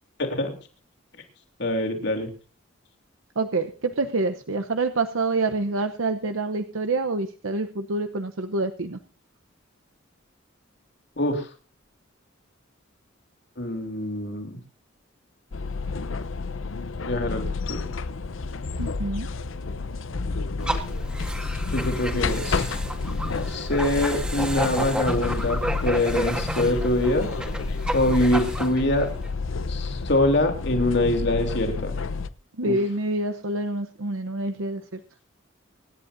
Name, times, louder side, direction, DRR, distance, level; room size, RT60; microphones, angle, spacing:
voice 1, 0.2-0.5 1.6-2.3 11.2-11.5 13.6-14.6 17.0-17.9 21.7-22.6 23.5-27.3 27.9-29.1 29.7-32.0 32.6-32.8, left 1 dB, 55° left, 3 dB, 3.2 m, -24 dB
voice 2, 3.4-9.0 18.8-19.3 32.6-35.0, right 2 dB, 80° right, 7 dB, 0.9 m, -27 dB
sound 1, 15.5-32.3, left 4 dB, 75° left, 0.7 m, -30 dB
sound 2, 20.6-29.3, equal, 5° right, 1.8 m, -31 dB
25.0 x 11.0 x 2.6 m, 0.34 s
head